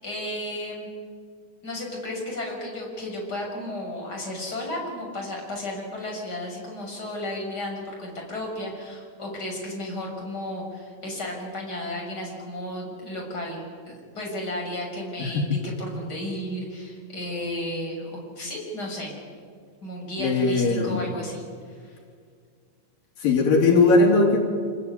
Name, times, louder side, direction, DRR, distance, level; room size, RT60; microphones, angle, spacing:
voice 1, 0.0-0.9 1.6-19.1 19.8-22.0, left 1 dB, 25° left, -1 dB, 6.9 m, -33 dB
voice 2, 20.2-21.0 23.2-24.5, left 3 dB, 80° left, 0 dB, 4.8 m, -19 dB
27.5 x 20.0 x 9.7 m, 2.1 s
omnidirectional pair, 3.9 m